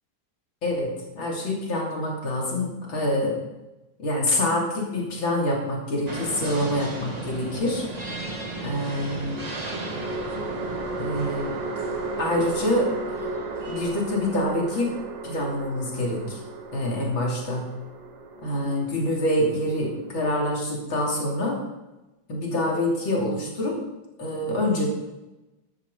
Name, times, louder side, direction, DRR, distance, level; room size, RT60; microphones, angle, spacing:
voice 1, 0.6-3.4 4.0-7.9 8.6-9.4 11.0-11.6 12.2-13.2 13.7-14.9 15.2-16.4 16.7-17.7 18.4-21.6 22.3-23.8 24.2-24.9, left 1 dB, 85° left, -2 dB, 3.8 m, -26 dB
sound 1, 6.1-14.0, right 2 dB, 20° right, 1.6 m, -36 dB
sound 2, 6.1-7.0 9.3-20.6, right 3 dB, 75° right, 2.1 m, -35 dB
14.0 x 12.5 x 4.1 m, 1.0 s
omnidirectional pair, 2.1 m